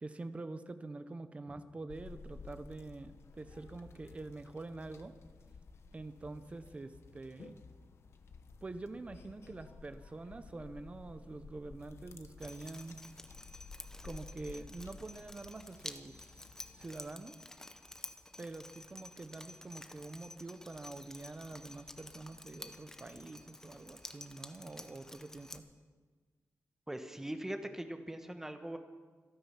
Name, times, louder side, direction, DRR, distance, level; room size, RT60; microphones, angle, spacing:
voice 1, 0.0-5.1 5.9-7.6 8.6-13.0 14.0-16.5 16.7-17.4 18.4-25.6, right 2 dB, 25° right, 10 dB, 0.8 m, -46 dB
sound 1, 1.9-17.0, left 4 dB, 55° left, 1.0 m, -54 dB
Drip, 12.4-25.6, left 1 dB, 10° left, 0.8 m, -51 dB
voice 2, 26.9-28.8, right 1 dB, 10° right, 7 dB, 1.1 m, -41 dB
26.0 x 9.4 x 5.8 m, 1.5 s
wide cardioid pair, 170°, 5 cm